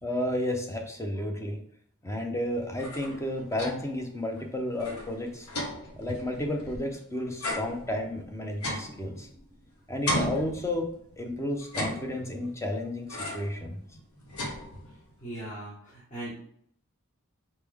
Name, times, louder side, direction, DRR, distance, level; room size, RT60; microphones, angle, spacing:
voice 1, 0.0-1.6 2.0-5.5 6.0-9.3 9.9-10.9 11.2-13.8, left 1 dB, 15° left, 3 dB, 0.6 m, -32 dB
sound 1, 2.6-4.0 4.4-4.5 4.7-7.0 7.4-9.6 10.1-11.1 11.6-12.5 13.1-13.6 14.0-15.1, left 1 dB, 80° left, 0.9 m, -35 dB
voice 2, 15.2-16.3, right 1 dB, 35° left, -9 dB, 1.5 m, -39 dB
4.3 x 3.3 x 3.4 m, 0.64 s
head